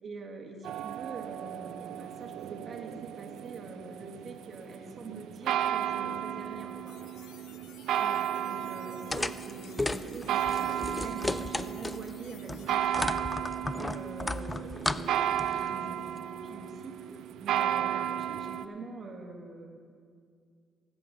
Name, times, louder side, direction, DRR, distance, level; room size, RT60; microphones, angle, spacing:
voice 1, 0.0-6.9 8.0-13.1 13.8-16.9 17.4-19.8, right 3 dB, 50° right, 1 dB, 1.7 m, -44 dB
sound 1, 0.6-18.6, right 10 dB, 80° right, 0.4 m, -34 dB
sound 2, 6.9-12.8, left 11 dB, 85° left, 0.5 m, -56 dB
voice 2, 6.9-7.7 13.3-13.5 17.0-17.3, equal, 20° right, 2 dB, 1.7 m, -59 dB
sound 3, 9.1-12.1 12.5-15.7, left 2 dB, 15° left, 0.3 m, -34 dB
19.5 x 7.9 x 3.9 m, 2.2 s
cardioid pair, 90°, 0 cm